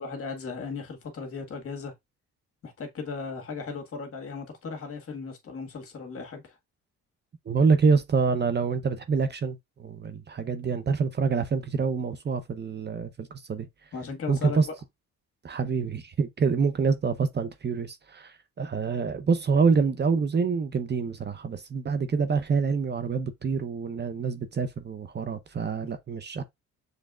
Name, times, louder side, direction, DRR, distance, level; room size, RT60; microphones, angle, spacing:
voice 1, 0.0-1.9 2.6-6.6 13.9-14.6, left 5 dB, 50° left, 1.7 m, -36 dB
voice 2, 7.5-13.7 14.3-14.7 15.4-26.4, right 5 dB, 35° right, 0.7 m, -26 dB
6.4 x 3.4 x 2.4 m
cardioid pair, 90°, 30 cm